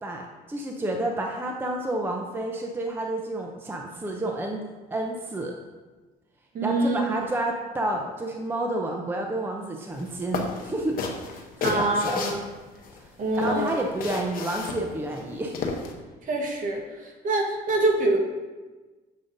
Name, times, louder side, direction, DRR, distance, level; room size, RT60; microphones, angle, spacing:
voice 1, 0.0-4.6 4.9-5.6 6.6-11.0 11.2-12.4 13.0-13.1 13.4-15.6, right 1 dB, 15° right, 2 dB, 0.5 m, -30 dB
voice 2, 6.5-7.0 11.6-12.4 13.2-13.7 16.3-16.8 17.2-18.2, right 2 dB, 50° right, 0 dB, 1.3 m, -24 dB
sound 1, 10.0-10.1 10.3-13.0 13.3-15.9, left 4 dB, 60° left, 0.8 m, -32 dB
7.2 x 4.9 x 2.6 m, 1.2 s
cardioid pair, 110°, 17 cm